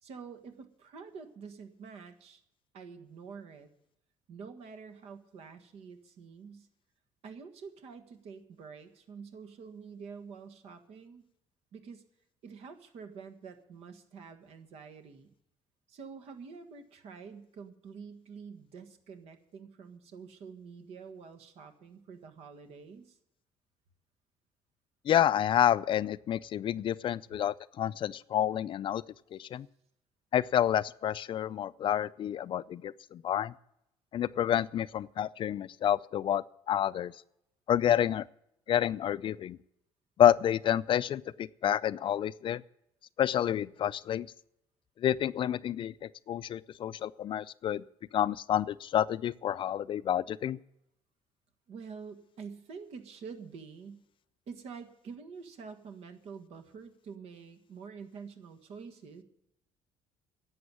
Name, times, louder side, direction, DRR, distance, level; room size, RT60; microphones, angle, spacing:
voice 1, 0.0-2.4 2.7-3.7 4.3-6.7 7.2-11.2 11.7-12.0 12.4-15.3 15.9-23.2 51.7-54.0 54.5-59.2, right 5 dB, 65° right, 8 dB, 1.6 m, -47 dB
voice 2, 25.1-29.0 29.3-29.7 30.3-33.5 34.1-37.1 37.7-38.2 38.7-39.6 40.2-42.6 43.2-44.3 45.0-45.9 46.3-47.8 48.1-50.6, left 10 dB, 50° left, 18 dB, 0.4 m, -29 dB
11.0 x 8.0 x 9.6 m, 0.80 s
cardioid pair, 95°, 11 cm